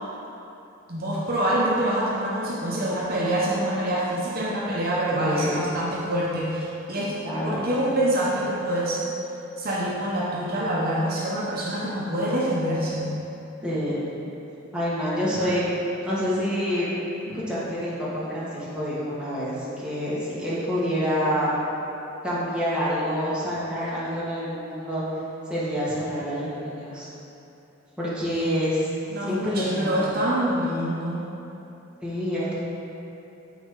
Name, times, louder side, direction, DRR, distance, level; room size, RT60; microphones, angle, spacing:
voice 1, 0.9-9.0 9.6-13.1 29.1-31.3, right 1 dB, 50° right, -5 dB, 0.8 m, -26 dB
voice 2, 5.2-5.5 7.2-7.7 13.6-14.0 14.7-15.6 16.0-16.9 17.3-21.5 22.2-25.0 25.5-27.1 28.0-28.9 29.3-30.1 32.0-32.5, equal, 5° right, -10 dB, 1.5 m, -27 dB
8.3 x 4.2 x 3.7 m, 2.9 s
head